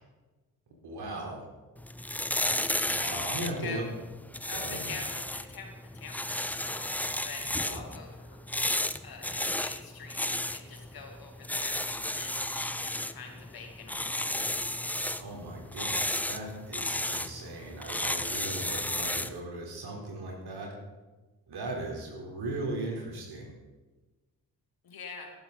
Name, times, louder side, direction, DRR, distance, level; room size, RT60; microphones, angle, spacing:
voice 1, 0.8-1.5 2.8-3.8 4.5-5.0 7.7-7.8 15.2-20.7 21.5-23.6, right 2 dB, 55° right, -1 dB, 4.0 m, -38 dB
sound 1, 1.8-19.4, left 1 dB, 5° left, 0.5 m, -33 dB
voice 2, 3.0-3.8 4.5-8.4 9.0-14.6 24.8-25.3, left 5 dB, 50° left, 2 dB, 2.7 m, -45 dB
15.0 x 12.5 x 4.1 m, 1.2 s
figure-of-eight pair, 40°, 47 cm